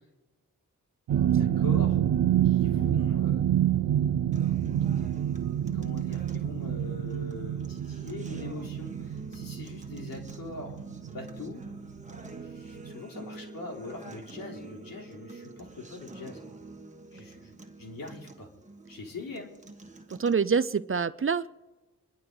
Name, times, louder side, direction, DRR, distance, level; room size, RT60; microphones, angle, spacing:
sound 1, 1.1-11.8 12.1-12.4 12.8-12.9, right 10 dB, 80° right, 0.6 m, -27 dB
voice 1, 1.3-2.0 2.4-3.4 3.8-4.0 4.9-11.7 12.4-16.7 17.1-17.5 17.8-18.5 18.9-19.5, left 3 dB, 80° left, -1 dB, 3.7 m, -43 dB
Acoustic guitar, 4.3-20.3, right 2 dB, 20° right, 1.6 m, -46 dB
voice 2, 20.1-21.5, right 5 dB, 40° right, 15 dB, 0.6 m, -26 dB
27.5 x 11.0 x 4.0 m, 1.2 s
cardioid pair, 60°, 34 cm